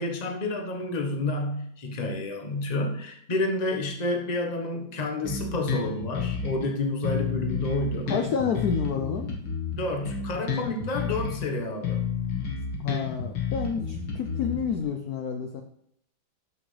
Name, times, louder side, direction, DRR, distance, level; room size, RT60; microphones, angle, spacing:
voice 1, 0.0-8.1 9.8-12.0, left 2 dB, 25° left, 2 dB, 0.9 m, -29 dB
Bass guitar, 5.2-6.7 7.0-11.5 11.8-14.8, left 6 dB, 85° left, 2.5 m, -31 dB
voice 2, 8.1-9.4 12.8-15.6, left 6 dB, 65° left, 5 dB, 1.0 m, -29 dB
12.5 x 6.0 x 3.3 m, 0.70 s
omnidirectional pair, 2.2 m